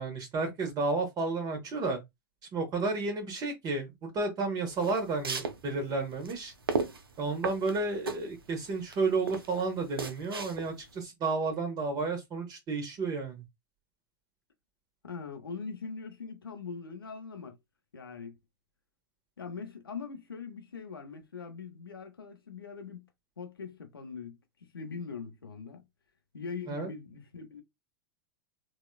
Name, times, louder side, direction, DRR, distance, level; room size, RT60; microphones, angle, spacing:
voice 1, 0.0-2.0 2.5-6.5 7.2-13.4 26.7-26.9, right 3 dB, 35° right, 0.9 m, -32 dB
sound 1, 4.7-11.0, right 4 dB, 90° right, 0.5 m, -36 dB
voice 2, 15.0-17.6 17.9-18.4 19.4-23.1 23.4-24.4 24.7-25.8 26.3-27.6, left 5 dB, 90° left, 0.6 m, -41 dB
4.0 x 2.2 x 2.3 m
hypercardioid pair, 100°, 12 cm